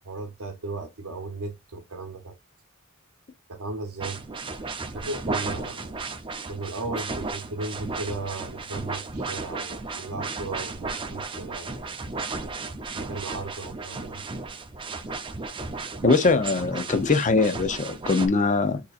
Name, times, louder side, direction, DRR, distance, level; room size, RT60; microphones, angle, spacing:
voice 1, 0.0-2.4 3.5-4.2 4.9-5.9 6.5-11.8 12.9-14.2, right 3 dB, 70° right, 0.7 m, -36 dB
sound 1, 4.0-18.3, right 3 dB, 25° right, 0.6 m, -34 dB
voice 2, 16.0-18.8, left 3 dB, 35° left, 0.6 m, -22 dB
6.6 x 2.8 x 2.4 m
head